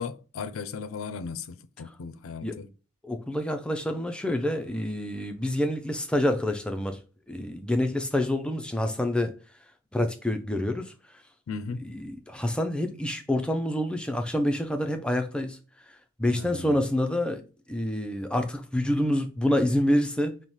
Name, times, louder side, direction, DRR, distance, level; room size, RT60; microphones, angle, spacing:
voice 1, 0.0-2.7 11.5-11.8 16.3-16.8, left 5 dB, 85° left, 0.4 m, -36 dB
voice 2, 3.0-7.0 7.3-9.3 9.9-10.9 11.8-15.6 16.2-17.4 17.7-20.4, left 1 dB, 5° left, 0.3 m, -27 dB
5.4 x 2.1 x 3.0 m
head